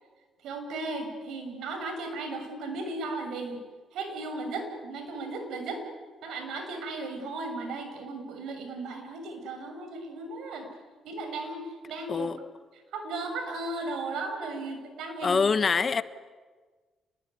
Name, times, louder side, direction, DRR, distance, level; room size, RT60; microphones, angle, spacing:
voice 1, 0.4-3.6 3.9-5.8 6.2-10.7 11.0-12.3 12.9-15.4, right 3 dB, 80° right, 6.7 m, -36 dB
voice 2, 12.1-12.4 15.2-16.0, left 5 dB, 40° left, 1.2 m, -24 dB
28.0 x 21.0 x 9.8 m
cardioid pair, 90°, 0 cm